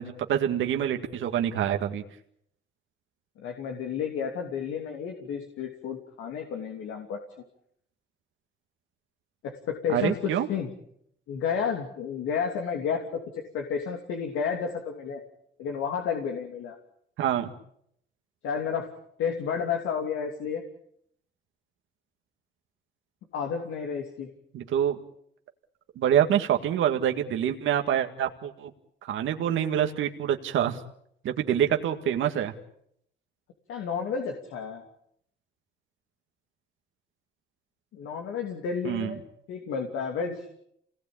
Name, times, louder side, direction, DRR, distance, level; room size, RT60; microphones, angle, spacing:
voice 1, 0.0-2.0 9.9-10.5 17.2-17.5 24.5-25.0 26.0-28.7 29.1-30.8 31.2-32.5 38.8-39.1, right 10 dB, 80° right, 5 dB, 2.1 m, -26 dB
voice 2, 3.4-7.2 9.4-10.7 11.3-13.1 13.3-15.2 15.6-16.8 18.4-18.9 19.2-20.6 23.3-24.3 33.7-34.8 37.9-39.2 39.5-40.5, left 6 dB, 90° left, 3 dB, 2.9 m, -31 dB
27.5 x 19.0 x 8.7 m, 0.73 s
cardioid pair, 90°, 20 cm